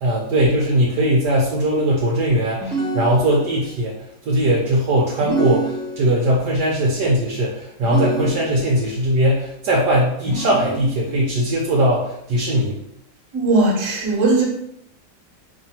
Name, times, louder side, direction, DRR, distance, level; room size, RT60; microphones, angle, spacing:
voice 1, 0.0-4.0 4.2-12.8, right 1 dB, 70° right, -4 dB, 1.2 m, -19 dB
sound 1, 2.6-3.7 5.2-6.4 7.8-8.9 10.3-11.2, right 2 dB, 10° left, 0.5 m, -27 dB
voice 2, 13.3-14.4, right 2 dB, 50° right, -2 dB, 1.2 m, -18 dB
3.1 x 2.6 x 4.1 m, 0.76 s
omnidirectional pair, 2.0 m